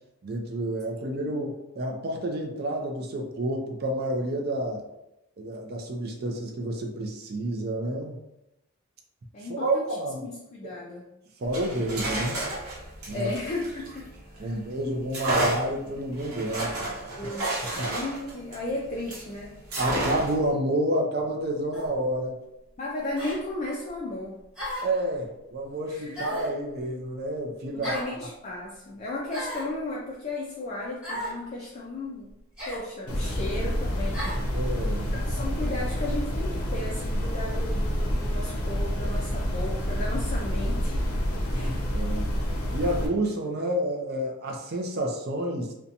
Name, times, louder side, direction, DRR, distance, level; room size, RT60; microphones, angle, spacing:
voice 1, 0.2-4.8 5.4-8.2 9.5-10.3 10.6-10.7 11.4-12.4 13.1-13.3 14.4-17.1 17.8-17.9 19.8-22.4 24.8-27.9 34.5-35.1 41.6-42.3 42.7-45.7, right 1 dB, 45° right, 1 dB, 0.4 m, -29 dB
voice 2, 1.0-1.3 9.3-9.8 10.2-11.1 13.1-14.1 14.4-14.5 17.2-19.6 22.8-24.4 25.9-26.2 27.7-32.3 32.6-34.5 35.1-41.1 41.5-41.9, left 2 dB, 30° left, -4 dB, 0.3 m, -35 dB
sound 1, 11.4-14.5 15.1-19.3 19.7-20.5, right 1 dB, 85° right, 0.8 m, -31 dB
sound 2, 21.7-21.9 23.2-23.4 24.5-25.0 26.1-26.6 27.8-28.1 29.3-29.7 31.0-31.4 32.6-32.9 34.1-34.4, equal, 5° right, 1.0 m, -34 dB
sound 3, 33.1-43.1, equal, 85° left, 0.5 m, -28 dB
2.5 x 2.2 x 2.7 m, 0.89 s
head